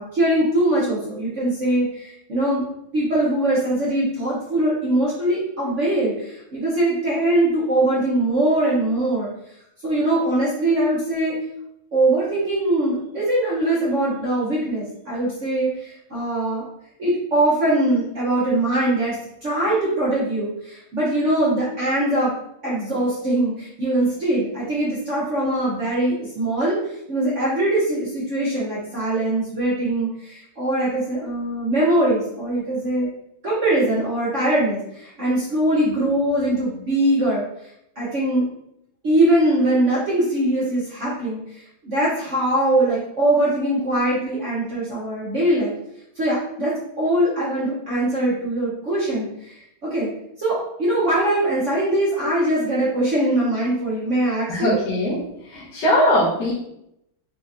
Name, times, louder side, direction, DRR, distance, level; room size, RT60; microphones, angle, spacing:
voice 1, 0.0-2.6 2.9-9.3 9.8-11.4 11.9-16.6 17.0-19.2 19.4-22.3 22.6-26.8 27.1-33.1 33.4-37.4 38.0-38.4 39.0-45.7 46.2-50.1 50.4-54.8, right 1 dB, 55° right, -7 dB, 0.8 m, -22 dB
voice 2, 54.5-56.5, left 1 dB, 60° left, -8 dB, 1.5 m, -21 dB
4.2 x 2.8 x 2.5 m, 0.78 s
omnidirectional pair, 2.2 m